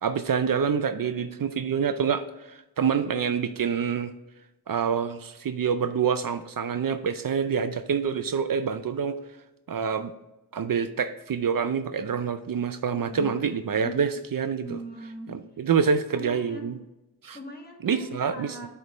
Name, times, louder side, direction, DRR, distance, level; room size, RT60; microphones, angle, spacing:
voice 1, 0.0-4.1 4.7-9.2 9.7-10.1 10.5-14.8 15.3-16.8 17.2-17.4 17.8-18.6, right 6 dB, 55° right, 10 dB, 0.5 m, -26 dB
voice 2, 13.1-14.0 14.6-15.3 16.0-16.8 17.3-18.7, left 1 dB, 25° left, 0 dB, 1.6 m, -40 dB
8.1 x 3.4 x 4.2 m, 0.99 s
wide cardioid pair, 65°, 40 cm